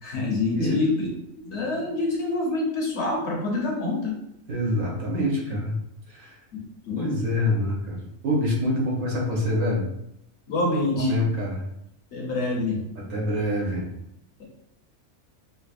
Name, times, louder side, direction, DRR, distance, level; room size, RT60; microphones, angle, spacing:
voice 1, 0.0-1.1 1.4-4.2 6.5-7.2 10.5-11.1 12.1-12.8 14.4-14.5, left 2 dB, 60° left, -2 dB, 1.1 m, -26 dB
voice 2, 4.5-5.7 6.1-6.3 7.0-9.8 10.9-11.6 12.9-13.9, left 1 dB, 90° right, -3 dB, 1.4 m, -26 dB
5.4 x 2.0 x 2.5 m, 0.80 s
omnidirectional pair, 1.4 m